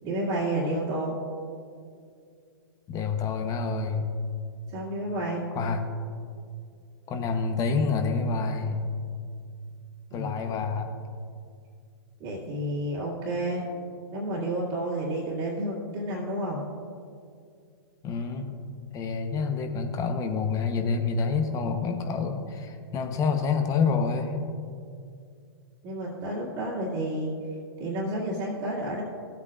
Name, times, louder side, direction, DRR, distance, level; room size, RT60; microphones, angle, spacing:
voice 1, 0.0-1.1 4.7-5.4 10.1-10.6 12.2-13.6 14.1-16.6 25.8-27.3 27.8-29.0, right 1 dB, 30° right, -8 dB, 2.2 m, -30 dB
voice 2, 2.9-4.1 5.5-5.9 7.1-8.8 10.1-10.9 18.0-18.5 18.9-24.4, left 5 dB, 25° left, 6 dB, 0.9 m, -27 dB
16.5 x 8.3 x 2.4 m, 2.3 s
hypercardioid pair, 125°, 14 cm